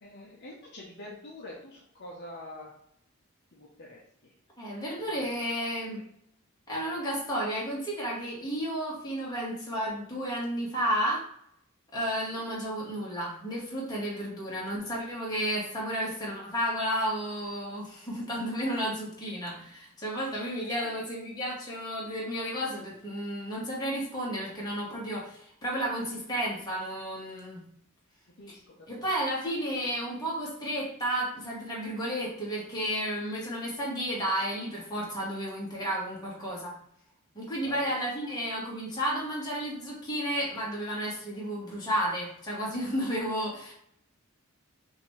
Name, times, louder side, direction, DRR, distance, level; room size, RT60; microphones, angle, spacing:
voice 1, 0.0-2.7 3.5-4.3 12.3-12.4 20.6-20.9 28.4-29.0 37.6-37.9, left 1 dB, 50° left, -2 dB, 0.8 m, -46 dB
voice 2, 4.6-6.0 6.7-11.2 11.9-27.6 28.5-28.6 28.9-36.7 37.3-43.7, equal, 20° left, -5 dB, 1.6 m, -32 dB
5.7 x 2.7 x 3.2 m, 0.71 s
head